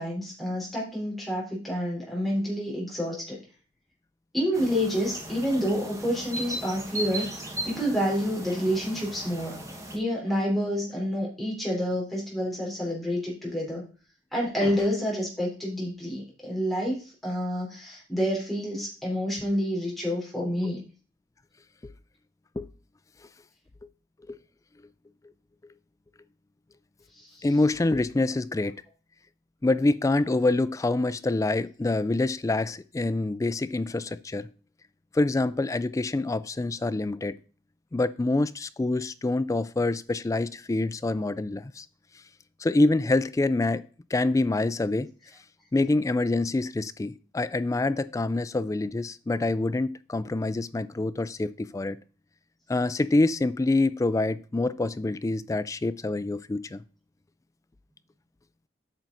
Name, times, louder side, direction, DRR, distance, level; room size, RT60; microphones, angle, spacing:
voice 1, 0.0-3.4 4.3-7.3 7.6-9.6 9.9-13.8 14.3-20.8 27.4-27.5, equal, ahead, 3.7 m, -28 dB
sound 1, 4.5-10.0, right 1 dB, 15° right, 1.4 m, -37 dB
voice 2, 27.4-28.7 29.6-34.5 35.1-37.3 37.9-41.9 42.6-43.8 44.1-45.1 45.7-52.0 52.7-56.8, left 2 dB, 15° left, 0.3 m, -26 dB
8.8 x 6.0 x 3.9 m
head